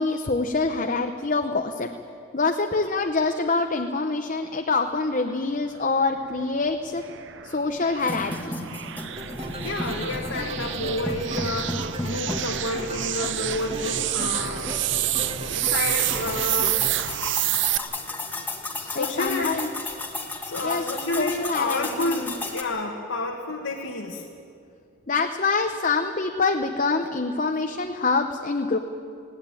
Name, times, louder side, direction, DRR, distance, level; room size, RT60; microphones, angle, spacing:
voice 1, 0.0-1.9 2.3-7.0 7.4-8.5 18.9-19.7 20.6-20.8 21.2-22.3 25.1-28.8, left 3 dB, 40° left, 5 dB, 0.7 m, -25 dB
sound 1, 6.2-17.8, right 13 dB, 60° right, 0.6 m, -29 dB
sound 2, 8.0-22.6, left 2 dB, 10° left, 1.5 m, -35 dB
sound 3, 9.1-17.0, equal, 30° right, 1.6 m, -36 dB
voice 2, 9.6-14.7 15.5-16.8 18.7-19.6 20.4-24.2, left 2 dB, 75° left, 0 dB, 1.6 m, -30 dB
20.5 x 17.5 x 8.9 m, 2.5 s
head